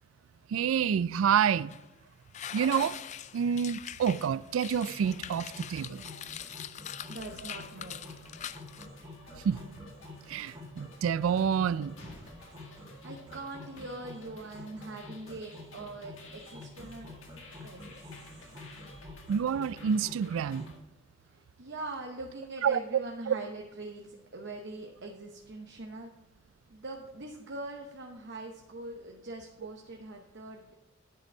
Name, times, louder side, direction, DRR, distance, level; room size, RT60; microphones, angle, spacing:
voice 1, 0.5-1.7 2.5-3.0 3.3-6.0 9.3-9.6 10.3-12.0 19.3-20.7 22.6-22.8 23.3-23.4, right 7 dB, 90° right, 0.3 m, -28 dB
sound 1, 1.7-1.8 2.3-8.9, left 9 dB, 35° left, 0.3 m, -43 dB
sound 2, 4.8-20.7, left 1 dB, 20° right, 2.4 m, -49 dB
sound 3, 5.1-20.8, left 3 dB, 70° left, 1.8 m, -54 dB
voice 2, 6.8-8.3 12.8-17.1 17.6-18.5 21.2-26.1 26.7-30.7, right 2 dB, 60° right, 0.9 m, -43 dB
10.5 x 5.9 x 4.5 m
head